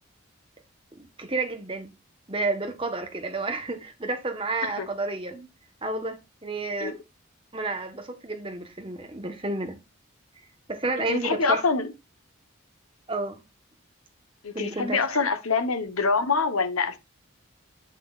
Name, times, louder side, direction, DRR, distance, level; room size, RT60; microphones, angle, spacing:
voice 1, 1.0-1.9 2.3-5.5 5.8-7.0 7.5-9.8 10.7-11.6 13.1-13.4 14.5-15.0, right 2 dB, 25° right, 1.1 m, -31 dB
voice 2, 11.1-11.9 14.4-17.0, left 4 dB, 90° left, 1.0 m, -25 dB
8.5 x 6.1 x 2.4 m
head